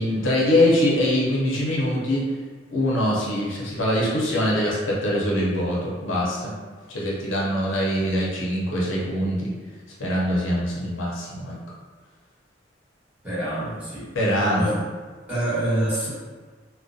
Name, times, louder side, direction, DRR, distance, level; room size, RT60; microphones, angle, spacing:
voice 1, 0.0-2.2 2.7-6.5 6.9-9.5 10.0-11.6 14.1-14.7, left 1 dB, 75° left, -5 dB, 0.6 m, -23 dB
voice 2, 13.2-14.1 14.5-14.8 15.3-16.1, right 1 dB, 10° right, -13 dB, 1.2 m, -26 dB
2.3 x 2.1 x 2.6 m, 1.4 s
head